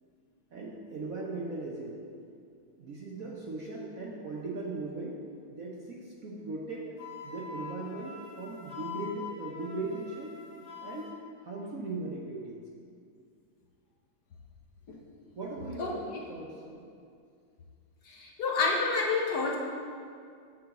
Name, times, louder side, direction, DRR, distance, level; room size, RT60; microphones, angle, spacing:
voice 1, 0.5-2.0 2.8-5.2 5.5-6.9 7.2-10.4 10.8-11.1 11.4-12.6 15.3-16.9, right 2 dB, 60° right, -3 dB, 1.0 m, -38 dB
Wind instrument woodwind instrument, 7.0-11.2, left 6 dB, 40° left, 0.9 m, -44 dB
voice 2, 18.1-19.6, left 4 dB, 60° left, -2 dB, 1.4 m, -28 dB
8.5 x 3.9 x 7.0 m, 2.3 s
omnidirectional pair, 2.1 m